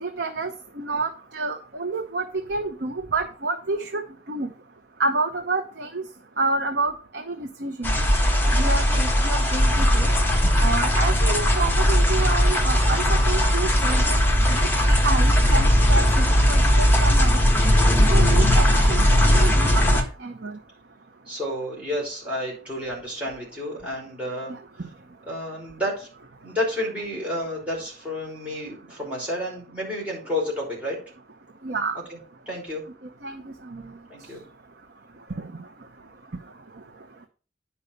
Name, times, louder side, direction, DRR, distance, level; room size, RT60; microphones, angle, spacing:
voice 1, 0.0-0.5 0.8-4.0 4.3-4.5 5.0-6.0 6.4-7.9 8.5-10.1 10.6-14.2 14.5-17.4 18.0-20.6 24.5-24.6 31.6-32.0 33.2-33.8 35.4-35.5, right 3 dB, 70° right, 5 dB, 0.9 m, -29 dB
sound 1, 7.8-20.0, equal, 10° left, 1.5 m, -18 dB
voice 2, 21.3-24.5 25.3-26.1 26.4-31.0 32.1-32.2 32.5-32.8 34.1-34.4, left 1 dB, 10° right, -5 dB, 5.4 m, -30 dB
9.8 x 5.6 x 5.3 m, 0.37 s
head